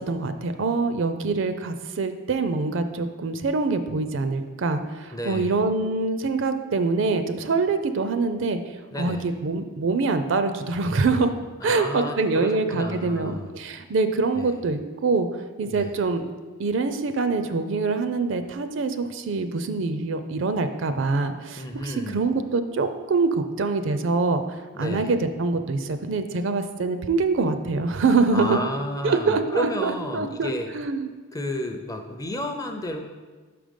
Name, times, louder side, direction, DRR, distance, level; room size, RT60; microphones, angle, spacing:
voice 1, 0.0-8.6 9.0-11.3 11.6-16.2 16.6-28.6 29.0-31.1, right 3 dB, 55° right, 9 dB, 0.4 m, -25 dB
voice 2, 5.1-5.6 8.9-9.4 11.6-13.5 14.3-14.6 15.7-16.0 21.6-22.2 24.7-25.1 28.3-30.7 31.3-33.0, left 1 dB, 15° left, 4 dB, 0.5 m, -31 dB
5.8 x 5.1 x 5.2 m, 1.4 s
head